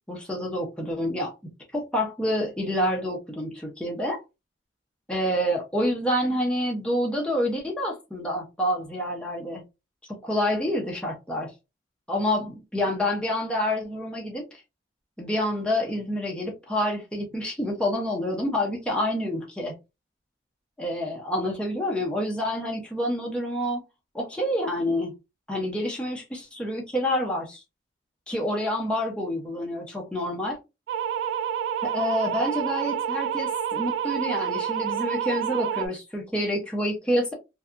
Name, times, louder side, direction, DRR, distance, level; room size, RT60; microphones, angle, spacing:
voice 1, 0.0-4.2 5.1-9.6 10.2-11.5 12.1-14.5 15.2-19.7 20.8-23.8 24.1-25.1 25.5-27.6 28.3-30.6 31.8-37.3, left 1 dB, 5° left, 0.5 m, -28 dB
sound 1, 30.9-35.9, right 8 dB, 85° right, 0.4 m, -28 dB
2.7 x 2.2 x 2.4 m
head